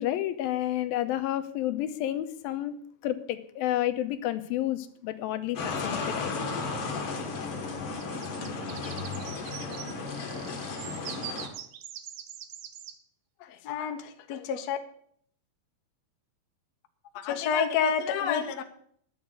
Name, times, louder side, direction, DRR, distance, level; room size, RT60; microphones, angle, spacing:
voice 1, 0.0-2.8 3.0-6.5, left 13 dB, 90° left, 2.6 m, -30 dB
sound 1, 5.6-11.5, left 4 dB, 45° left, 2.3 m, -34 dB
sound 2, 8.0-13.0, right 9 dB, 80° right, 2.5 m, -43 dB
voice 2, 13.4-14.8 17.1-18.6, left 7 dB, 65° left, 1.8 m, -29 dB
10.5 x 7.1 x 8.2 m
omnidirectional pair, 4.1 m